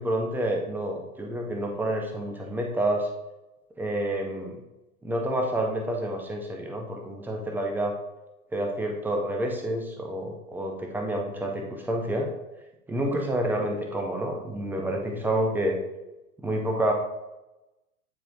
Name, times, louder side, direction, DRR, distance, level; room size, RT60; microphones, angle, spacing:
voice 1, 0.0-3.1 3.8-4.6 5.0-8.0 8.5-12.3 12.9-15.8 16.4-16.9, right 1 dB, 5° right, 1 dB, 0.4 m, -28 dB
9.3 x 4.2 x 2.5 m, 0.99 s
figure-of-eight pair, 105°, 43 cm